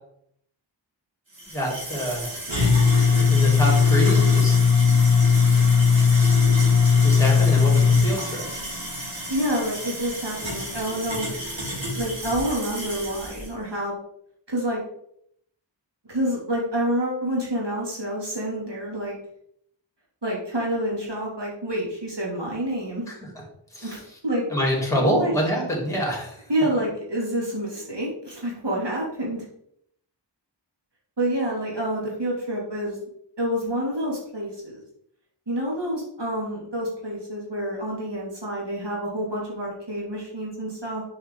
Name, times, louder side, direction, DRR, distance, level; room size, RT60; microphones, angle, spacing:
sound 1, 1.4-13.4, left 5 dB, 90° right, 3.0 m, -20 dB
voice 1, 1.5-2.4 3.3-4.6 7.0-8.5 23.1-23.3 23.7-24.0 24.5-26.4, equal, 5° left, -1 dB, 2.5 m, -26 dB
voice 2, 9.3-11.4 12.0-14.0 14.5-14.8 16.1-19.2 20.2-23.0 23.8-24.4 25.0-25.3 26.5-29.4 31.2-33.0 33.4-34.8 35.5-41.0, right 1 dB, 65° right, -4 dB, 2.5 m, -28 dB
7.0 x 5.5 x 3.7 m, 0.71 s
wide cardioid pair, 50°, 45 cm